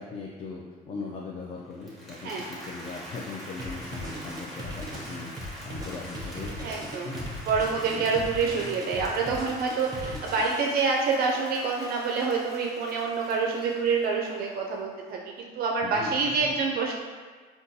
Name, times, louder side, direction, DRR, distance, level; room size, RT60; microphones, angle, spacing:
voice 1, 0.0-7.3 7.9-8.1 10.0-10.2 15.8-16.1 16.4-16.5, left 4 dB, 35° left, -3 dB, 0.4 m, -39 dB
Applause, 1.7-14.7, equal, ahead, 0.9 m, -44 dB
sound 1, 3.6-10.9, equal, 20° right, 0.6 m, -39 dB
voice 2, 6.6-7.1 7.5-16.9, right 4 dB, 65° right, 0 dB, 0.4 m, -27 dB
3.7 x 2.3 x 2.6 m, 1.5 s
cardioid pair, 110°, 17 cm